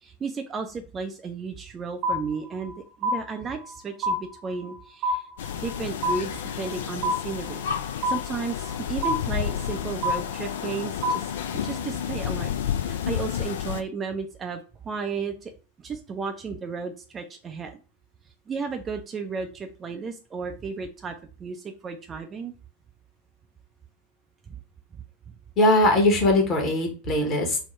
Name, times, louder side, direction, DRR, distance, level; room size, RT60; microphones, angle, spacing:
voice 1, 0.0-5.3 5.5-7.6 8.0-11.3 11.6-15.5 15.8-17.8 18.5-22.5 24.5-24.6 24.9-25.0, right 5 dB, 20° right, 5 dB, 0.4 m, -34 dB
sound 1, 2.0-2.7 3.0-3.8 4.0-4.8 5.0-5.8 6.0-6.8 7.0-7.8 8.0-8.8 9.0-9.8 10.0-10.8 11.0-11.8, equal, 35° right, 0.9 m, -28 dB
sound 2, 5.4-13.8, left 9 dB, 60° left, 0.4 m, -31 dB
voice 2, 25.6-27.6, left 1 dB, 30° left, 2 dB, 1.1 m, -20 dB
3.7 x 2.2 x 4.5 m, 0.35 s
figure-of-eight pair, 90°, 0 cm